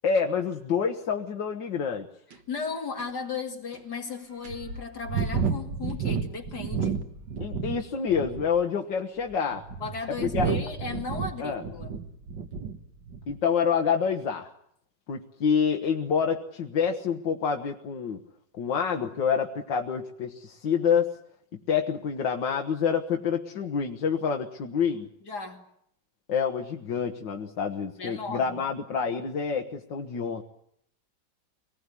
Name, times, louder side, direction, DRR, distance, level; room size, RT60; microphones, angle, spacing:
voice 1, 0.0-2.1 7.4-9.6 10.2-10.5 11.4-11.6 13.3-14.5 15.1-18.2 18.6-21.1 21.7-25.1 26.3-30.4, left 6 dB, 85° left, 3 dB, 1.9 m, -27 dB
sound 1, 2.3-2.4 3.0-3.1 3.7-3.8 4.4-7.8 8.1-8.6 9.3-12.8 13.1-13.4, right 6 dB, 85° right, 2.3 m, -31 dB
voice 2, 2.5-7.0 9.8-11.9 25.2-25.6 28.0-28.5, left 4 dB, 65° left, 3 dB, 3.1 m, -35 dB
24.5 x 19.5 x 9.8 m, 0.72 s
omnidirectional pair, 1.9 m